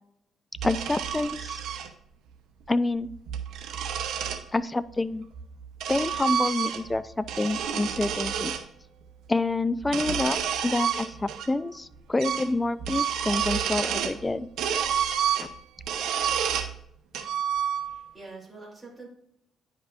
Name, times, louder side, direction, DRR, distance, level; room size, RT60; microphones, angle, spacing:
voice 1, 0.6-1.6 2.7-3.1 4.5-5.3 5.9-8.5 9.3-14.5 15.4-15.5, left 2 dB, 20° left, 15 dB, 0.4 m, -28 dB
sound 1, 0.6-1.9 3.1-4.4 5.3-7.0 7.2-8.6 9.8-11.5 11.8-11.9 12.2-12.5 12.8-14.2 14.6-16.7 17.1-18.1, right 8 dB, 85° right, 0.8 m, -29 dB
voice 2, 17.2-19.1, right 3 dB, 10° right, -4 dB, 3.0 m, -47 dB
10.0 x 5.4 x 2.5 m, 0.75 s
cardioid pair, 90°, 0 cm